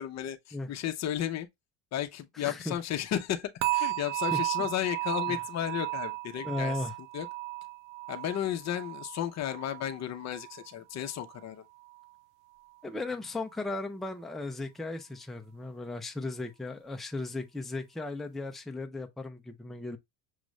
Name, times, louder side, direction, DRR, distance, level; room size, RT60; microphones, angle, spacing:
voice 1, 0.0-1.5 1.9-6.7 7.1-7.3 8.1-11.6, left 11 dB, 35° left, 0.7 m, -33 dB
voice 2, 2.3-2.8 4.3-4.7 5.3-5.4 6.4-7.0 12.8-20.0, left 2 dB, ahead, 0.4 m, -36 dB
sound 1, 3.6-10.7 11.0-11.4 11.9-12.0, right 20 dB, 85° right, 0.7 m, -35 dB
6.4 x 2.4 x 3.1 m
supercardioid pair, 120°, 48 cm